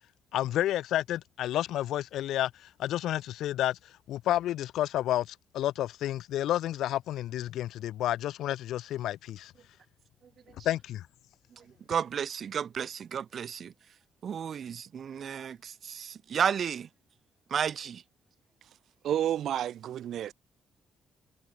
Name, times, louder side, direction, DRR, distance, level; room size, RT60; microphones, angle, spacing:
voice 1, 0.3-3.8 4.1-9.5 10.6-11.1, left 13 dB, 80° left, 7.3 m, -30 dB
voice 2, 11.6-13.7 14.2-16.9 17.5-18.0, right 8 dB, 55° right, 4.3 m, -33 dB
voice 3, 19.0-20.3, right 11 dB, 70° right, 3.0 m, -30 dB
cardioid pair, 90°, 0 cm